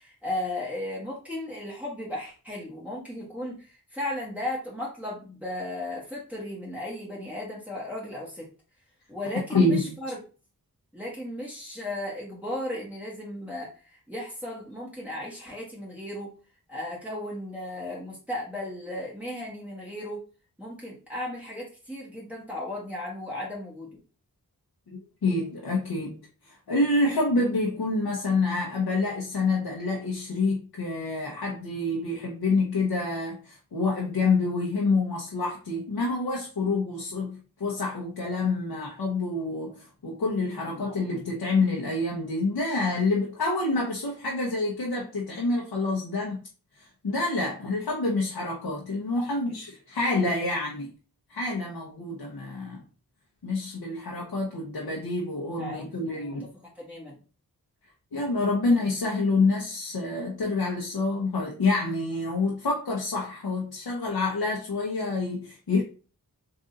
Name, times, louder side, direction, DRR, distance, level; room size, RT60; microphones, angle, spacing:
voice 1, 0.0-8.5 9.1-10.2 10.9-16.3 16.7-20.2 20.6-24.0 25.3-25.4 40.5-40.8 55.5-55.9 56.1-56.3 56.7-57.2, left 1 dB, 5° right, 1.5 m, -35 dB
voice 2, 9.5-9.9 24.9-26.2 26.5-46.4 46.8-50.9 51.3-52.8 53.4-56.5 58.1-65.8, left 3 dB, 80° left, 1.0 m, -27 dB
3.8 x 2.7 x 3.8 m
cardioid pair, 50°, 37 cm